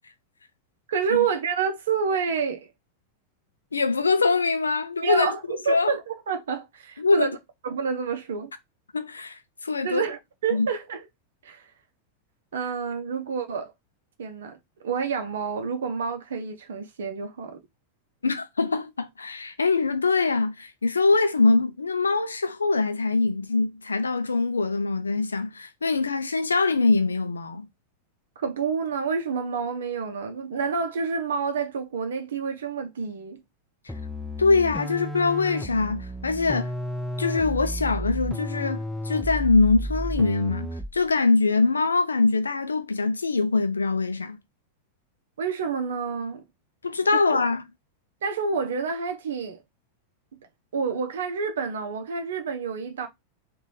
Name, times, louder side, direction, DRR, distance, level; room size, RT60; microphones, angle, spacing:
voice 1, 0.9-2.7 5.0-7.3 7.6-8.5 9.8-11.1 11.4-11.6 12.5-13.7 14.2-14.6 14.8-17.6 28.4-33.4 45.4-46.4 47.3-47.4 48.2-49.6 50.7-53.1, right 6 dB, 65° right, 0.7 m, -28 dB
voice 2, 3.7-5.4 5.7-6.0 7.0-7.4 8.9-10.0 10.5-10.7 18.2-27.7 34.4-36.7 37.2-44.4 46.8-47.6, left 3 dB, 75° left, 0.6 m, -23 dB
sound 1, 33.9-41.0, equal, ahead, 0.7 m, -32 dB
3.1 x 2.6 x 4.2 m
figure-of-eight pair, 90°, 0 cm